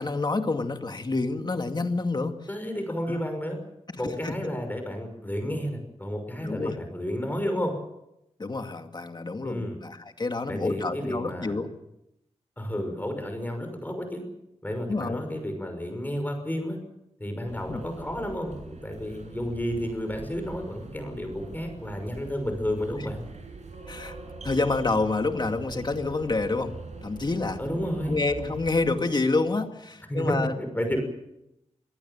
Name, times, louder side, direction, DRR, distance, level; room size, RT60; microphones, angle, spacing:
voice 1, 0.0-2.3 3.1-3.2 4.0-4.3 6.4-6.8 8.4-11.7 14.9-15.2 17.7-17.8 23.9-24.2 24.4-26.8 27.0-27.6 28.1-30.5, left 3 dB, 40° left, 6 dB, 2.3 m, -28 dB
voice 2, 2.5-3.6 4.0-7.7 9.4-9.8 10.5-11.6 12.6-14.2 14.6-16.8 17.2-23.2 27.6-28.2 30.1-31.0, equal, 15° left, 5 dB, 6.0 m, -31 dB
sound 1, 17.5-28.9, right 4 dB, 75° right, 6.6 m, -43 dB
26.0 x 18.5 x 7.4 m, 0.85 s
wide cardioid pair, 95°, 12 cm